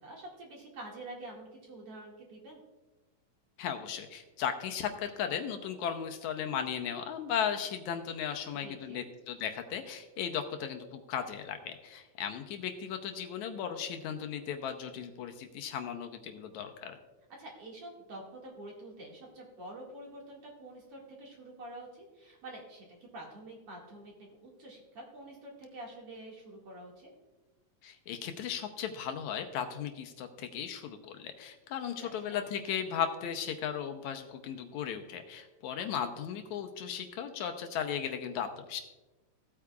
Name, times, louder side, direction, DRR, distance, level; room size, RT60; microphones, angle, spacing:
voice 1, 0.0-2.6 8.6-9.0 17.4-22.9 23.1-24.1 24.4-27.1 31.8-32.4, right 1 dB, 50° right, -2 dB, 2.7 m, -47 dB
voice 2, 3.6-17.0 27.8-38.8, left 8 dB, 80° left, 6 dB, 2.1 m, -36 dB
16.5 x 8.5 x 2.3 m, 1.1 s
omnidirectional pair, 3.5 m